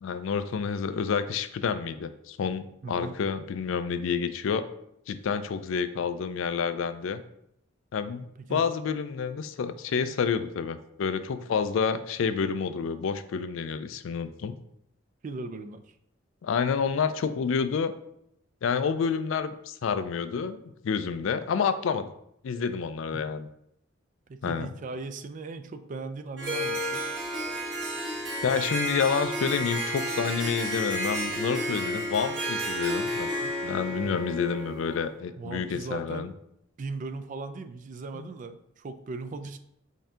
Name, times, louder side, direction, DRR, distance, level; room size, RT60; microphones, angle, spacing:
voice 1, 0.0-4.7 5.1-7.2 7.9-8.2 8.5-14.6 16.4-17.9 18.6-22.1 22.4-23.5 24.4-24.7 28.4-36.3 38.1-38.3, left 6 dB, 70° left, 11 dB, 0.3 m, -29 dB
voice 2, 2.8-3.1 8.4-8.7 15.2-16.0 23.1-23.3 24.3-27.1 34.0-34.2 35.4-36.3 36.8-39.6, right 3 dB, 40° right, 10 dB, 0.3 m, -38 dB
Harp, 26.4-35.1, equal, 60° right, 1.3 m, -31 dB
5.5 x 2.7 x 3.6 m, 0.76 s
head